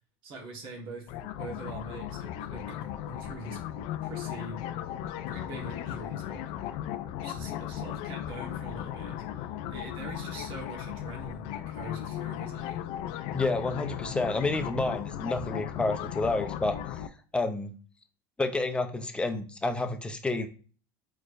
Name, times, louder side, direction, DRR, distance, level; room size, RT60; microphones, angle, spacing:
voice 1, 0.2-2.7 3.1-3.6 4.0-4.6 5.3-6.5 7.2-12.8, right 2 dB, 50° right, 0 dB, 1.4 m, -43 dB
sound 1, 1.1-17.1, left 11 dB, 60° left, 0.4 m, -36 dB
voice 2, 13.3-16.8 17.3-17.7 18.4-20.5, left 2 dB, 10° left, 6 dB, 0.5 m, -29 dB
4.3 x 3.0 x 2.5 m, 0.39 s
supercardioid pair, 120°, 11 cm